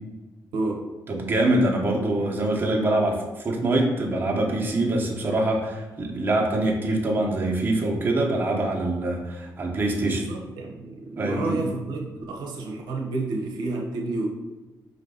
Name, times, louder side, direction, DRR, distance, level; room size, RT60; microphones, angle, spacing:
voice 1, 0.5-0.9 10.0-14.3, right 2 dB, 90° right, 0 dB, 0.7 m, -30 dB
voice 2, 1.1-10.2 11.2-11.6, right 1 dB, 30° right, -2 dB, 1.0 m, -24 dB
4.9 x 2.6 x 3.8 m, 1.2 s
cardioid pair, 95°, 7 cm